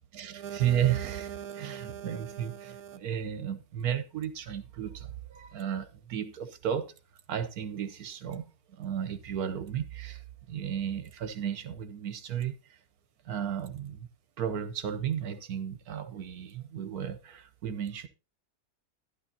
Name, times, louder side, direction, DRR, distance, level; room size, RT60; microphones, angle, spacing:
voice 1, 0.1-6.9 7.3-10.2 10.5-12.8 13.2-14.1 14.4-18.1, right 9 dB, 70° right, 1.3 m, -33 dB
11.5 x 11.5 x 2.8 m
omnidirectional pair, 1.7 m